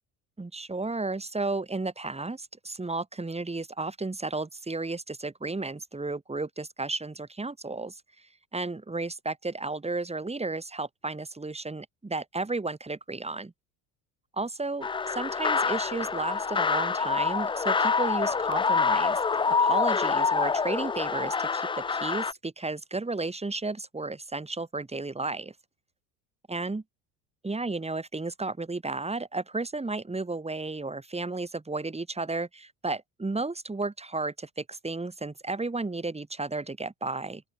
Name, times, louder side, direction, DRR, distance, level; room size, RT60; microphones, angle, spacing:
voice 1, 0.4-8.0 8.5-13.5 14.4-19.2 19.5-25.5 26.5-26.8 27.4-37.4, right 3 dB, 15° right, 3.6 m, -33 dB
sound 1, 14.8-22.3, left 5 dB, 10° left, 0.5 m, -26 dB
open air
hypercardioid pair, 65°, 45 cm